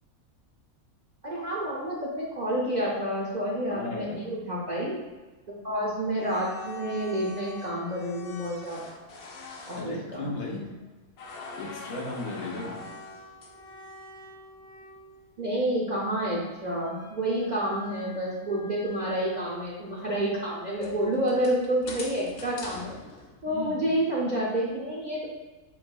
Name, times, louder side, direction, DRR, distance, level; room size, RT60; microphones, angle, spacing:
voice 1, 1.2-5.0 5.6-8.9 9.7-10.3 15.4-22.9 23.4-25.3, right 1 dB, 45° right, -6 dB, 0.6 m, -29 dB
voice 2, 3.7-4.3 9.8-10.7 11.6-12.8 23.5-23.9, left 2 dB, 90° left, -3 dB, 1.5 m, -35 dB
sound 1, 6.0-10.8 11.2-15.4 16.8-19.5 20.0-20.1 20.7-23.8, left 4 dB, 60° left, 0.7 m, -44 dB
7.1 x 2.7 x 2.3 m, 1.2 s
omnidirectional pair, 1.5 m